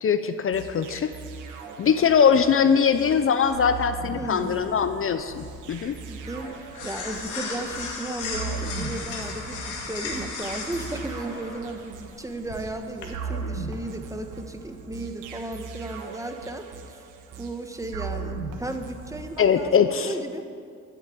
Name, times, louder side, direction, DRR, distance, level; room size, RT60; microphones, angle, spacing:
voice 1, 0.0-1.1 1.8-6.0 19.4-20.1, left 7 dB, 45° left, 10 dB, 0.7 m, -21 dB
sound 1, 0.5-19.7, right 4 dB, 85° right, 1.4 m, -38 dB
voice 2, 4.1-4.6 6.1-17.0 17.4-20.4, right 1 dB, 10° right, 6 dB, 1.2 m, -35 dB
sound 2, 4.6-13.0, left 4 dB, 85° left, 2.4 m, -37 dB
13.0 x 7.8 x 8.6 m, 2.3 s
cardioid pair, 90°, 30 cm